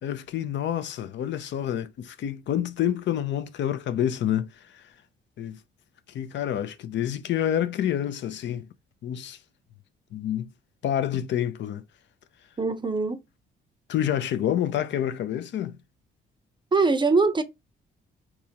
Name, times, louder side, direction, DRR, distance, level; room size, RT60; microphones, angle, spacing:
voice 1, 0.0-4.9 5.4-5.6 6.1-8.7 9.0-9.4 10.1-10.5 10.8-11.8 13.9-15.8, left 10 dB, 65° left, 0.5 m, -28 dB
voice 2, 12.6-13.2 16.7-17.4, right 4 dB, 25° right, 0.6 m, -22 dB
3.5 x 3.0 x 2.8 m
cardioid pair, 90°, 20 cm